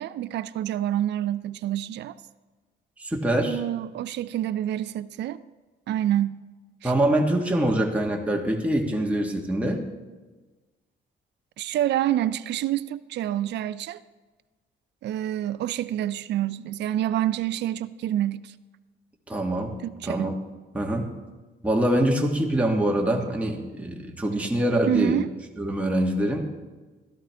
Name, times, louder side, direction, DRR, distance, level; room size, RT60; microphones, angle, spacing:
voice 1, 0.0-2.1 3.5-5.4 5.9-6.4 6.8-6.9 11.6-14.0 15.0-18.5 19.8-20.4 24.9-25.3, right 12 dB, 60° right, 0.4 m, -27 dB
voice 2, 3.0-3.6 6.8-9.8 19.3-19.7 20.0-20.3 20.7-21.1 21.6-25.2 25.6-26.5, right 1 dB, 5° right, 1.4 m, -24 dB
12.5 x 12.0 x 3.4 m
cardioid pair, 90°, 20 cm